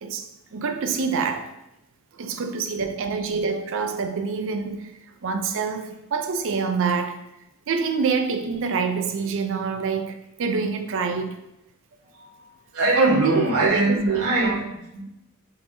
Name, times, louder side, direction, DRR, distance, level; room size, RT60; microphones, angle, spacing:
voice 1, 0.0-1.5 2.1-7.2 7.7-11.4 13.0-14.6, right 5 dB, 60° right, 0.5 m, -26 dB
voice 2, 12.7-15.0, right 1 dB, 85° right, 1.5 m, -23 dB
5.5 x 3.4 x 2.7 m
head